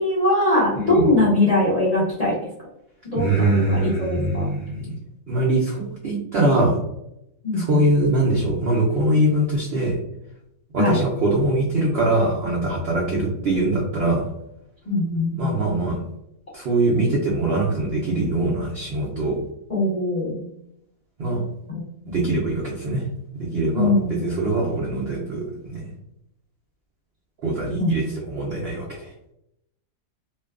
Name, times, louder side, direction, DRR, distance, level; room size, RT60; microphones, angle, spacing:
voice 1, 0.0-2.4 3.0-4.5 7.4-7.9 10.8-11.0 13.1-13.2 14.9-15.6 19.7-20.4 23.8-24.3 27.8-27.9, left 2 dB, 50° left, -7 dB, 0.4 m, -21 dB
voice 2, 0.8-1.1 3.2-5.0 5.3-6.8 7.5-10.0 10.7-14.3 15.4-16.0 16.5-19.4 21.2-21.4 22.1-23.0 23.3-25.9 27.4-29.1, right 2 dB, 85° right, -3 dB, 0.5 m, -22 dB
2.6 x 2.2 x 2.3 m, 0.81 s
omnidirectional pair, 1.7 m